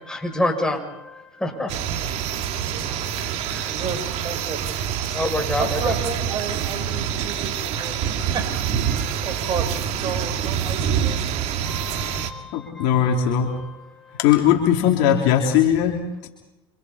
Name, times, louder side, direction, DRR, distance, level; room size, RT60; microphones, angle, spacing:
voice 1, 0.0-1.7 3.2-3.7 5.1-5.9 9.0-9.5 11.0-11.2 11.6-12.9 13.6-13.7, left 1 dB, 5° left, 0 dB, 7.1 m, -28 dB
sound 1, 1.7-12.3, right 8 dB, 55° right, 2.3 m, -26 dB
voice 2, 3.6-4.7 5.6-8.5 9.2-11.5, right 5 dB, 35° right, 5 dB, 4.6 m, -32 dB
voice 3, 12.5-13.6 14.2-16.3, left 9 dB, 65° left, 1 dB, 3.2 m, -19 dB
28.5 x 26.0 x 4.3 m, 0.99 s
hypercardioid pair, 90°, 13 cm